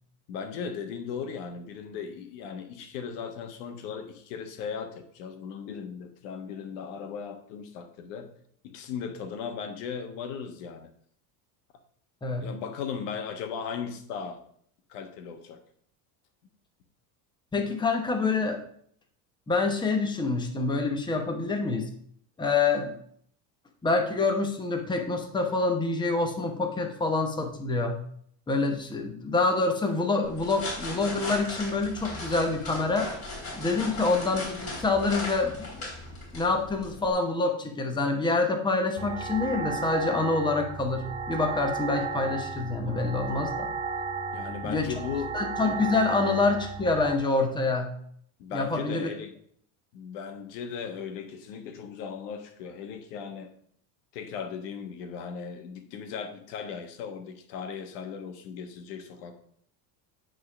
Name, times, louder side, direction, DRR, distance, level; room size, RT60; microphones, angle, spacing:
voice 1, 0.3-8.3 8.6-10.9 12.4-14.4 14.9-15.6 33.8-34.1 44.3-45.3 48.4-49.3 49.9-53.6 54.1-59.3, left 6 dB, 85° left, 7 dB, 1.4 m, -37 dB
voice 2, 17.5-18.6 19.5-21.9 22.4-22.9 23.8-28.0 28.5-33.1 33.5-35.9 36.3-43.7 44.6-44.9 45.3-48.0 48.5-49.1, left 3 dB, 10° left, 4 dB, 1.0 m, -26 dB
sound 1, 30.2-37.1, left 2 dB, 30° left, 3.4 m, -38 dB
sound 2, 39.0-47.1, right 4 dB, 15° right, 0.6 m, -34 dB
9.3 x 3.8 x 6.0 m, 0.64 s
cardioid pair, 140°, 46 cm